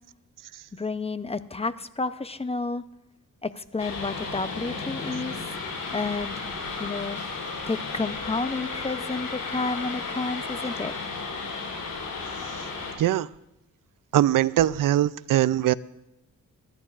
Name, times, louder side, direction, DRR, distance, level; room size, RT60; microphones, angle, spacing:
voice 1, 0.7-2.8 3.4-5.5 5.9-6.5 6.8-7.3 7.7-10.9, left 3 dB, 20° left, 0.6 m, -31 dB
sound 1, 3.8-12.9, left 4 dB, 75° left, 5.9 m, -34 dB
voice 2, 14.1-15.7, right 12 dB, 75° right, 0.5 m, -21 dB
23.0 x 13.0 x 2.5 m
cardioid pair, 80°, 33 cm